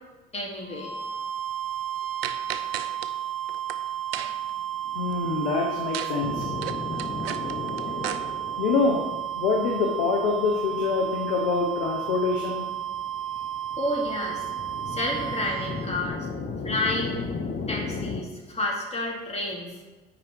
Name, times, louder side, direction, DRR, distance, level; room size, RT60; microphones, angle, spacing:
voice 1, 0.3-1.0 4.8-5.2 13.8-14.5 14.9-16.3 16.6-17.2 17.7-19.7, left 1 dB, 20° left, -3 dB, 2.8 m, -30 dB
sound 1, 0.6-15.9, right 10 dB, 45° right, 2.2 m, -33 dB
sound 2, 2.2-3.1 3.5-3.8 4.1-4.5 5.9-6.2 6.4-8.2, right 10 dB, 85° right, 0.5 m, -34 dB
voice 2, 4.9-6.5 8.6-9.0 9.3-12.6, left 4 dB, 80° left, 0 dB, 1.0 m, -25 dB
sound 3, 6.2-18.2, left 4 dB, 35° left, 1.1 m, -35 dB
9.0 x 5.0 x 4.7 m, 1.2 s
hypercardioid pair, 65°, 29 cm